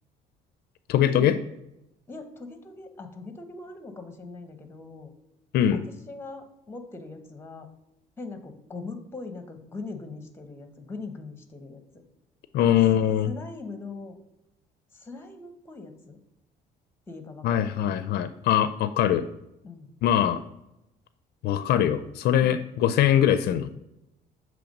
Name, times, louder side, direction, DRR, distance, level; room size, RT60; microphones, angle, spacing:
voice 1, 0.9-1.4 5.5-5.8 12.5-13.3 17.4-19.2 20.0-20.4 21.4-23.7, left 10 dB, 70° left, 12 dB, 0.4 m, -22 dB
voice 2, 2.1-5.1 5.7-7.7 8.2-12.0 12.6-12.8 13.2-14.2 14.9-16.2 17.1-17.9 19.6-19.9, left 3 dB, 15° left, 7 dB, 0.9 m, -41 dB
6.9 x 3.1 x 5.2 m, 0.88 s
cardioid pair, 110°, 17 cm